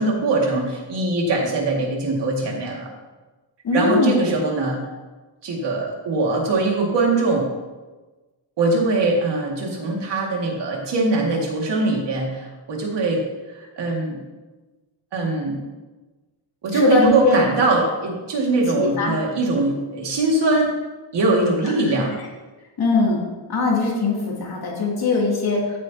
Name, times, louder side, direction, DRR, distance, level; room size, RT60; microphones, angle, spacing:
voice 1, 0.0-2.9 3.7-4.8 5.4-7.5 8.6-13.2 13.5-14.1 15.1-15.6 16.6-20.7 21.1-22.1, right 2 dB, 60° right, -1 dB, 2.2 m, -21 dB
voice 2, 3.6-4.1 16.7-17.4 18.8-19.2 22.8-23.2 23.5-25.8, left 3 dB, 50° left, -3 dB, 2.7 m, -21 dB
15.0 x 8.1 x 2.8 m, 1.2 s
wide cardioid pair, 175°, 47 cm